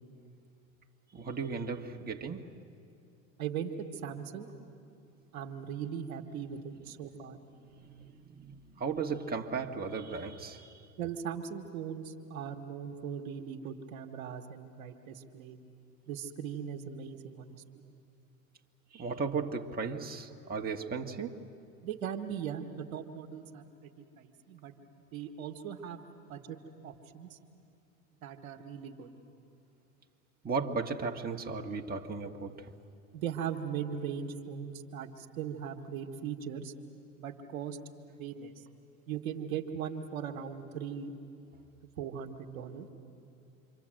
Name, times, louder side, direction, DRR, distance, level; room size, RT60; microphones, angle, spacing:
voice 1, 1.1-2.7 6.9-7.0 7.7-10.9 18.9-21.5 30.4-32.8, right 5 dB, 20° right, 1.8 m, -36 dB
voice 2, 3.4-3.7 4.0-4.5 5.3-7.4 11.0-15.6 16.1-17.6 21.8-23.6 24.2-24.7 25.1-26.0 26.3-26.6 26.8-27.3 28.2-29.1 33.1-35.1 35.4-36.7 37.2-37.8 38.2-38.5 39.1-41.1 42.0-42.9, right 8 dB, 80° right, 1.7 m, -39 dB
27.5 x 25.0 x 7.8 m
hypercardioid pair, 85°, 42 cm